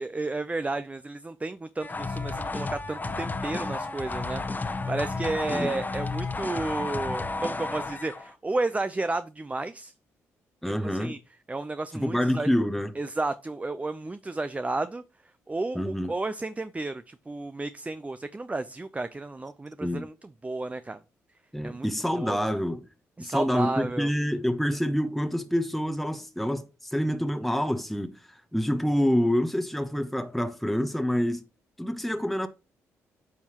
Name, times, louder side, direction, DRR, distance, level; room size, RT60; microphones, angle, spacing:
voice 1, 0.0-9.9 10.6-11.2 11.5-12.5 12.9-15.0 15.5-21.0 21.6-21.9 22.2-22.4 23.2-24.1, right 2 dB, 20° right, 0.6 m, -32 dB
sound 1, 1.8-8.3, left 3 dB, 25° left, 1.2 m, -32 dB
voice 2, 10.6-11.1 11.9-13.0 15.7-16.1 19.8-20.1 21.5-22.9 23.2-31.4 31.8-32.5, equal, ahead, 0.9 m, -27 dB
9.3 x 5.4 x 3.0 m
supercardioid pair, 50°, 7 cm